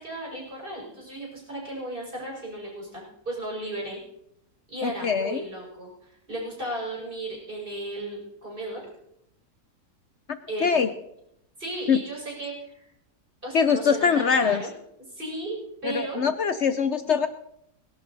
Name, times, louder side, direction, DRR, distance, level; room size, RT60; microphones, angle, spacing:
voice 1, 0.0-4.0 4.7-8.8 10.5-10.8 11.6-12.9 13.4-14.7 15.1-16.3, right 1 dB, 30° right, -3 dB, 5.7 m, -35 dB
voice 2, 4.8-5.4 10.6-10.9 11.9-12.0 13.5-14.6 15.8-17.3, left 6 dB, 55° left, 11 dB, 0.8 m, -23 dB
20.5 x 11.5 x 4.0 m, 0.77 s
omnidirectional pair, 1.7 m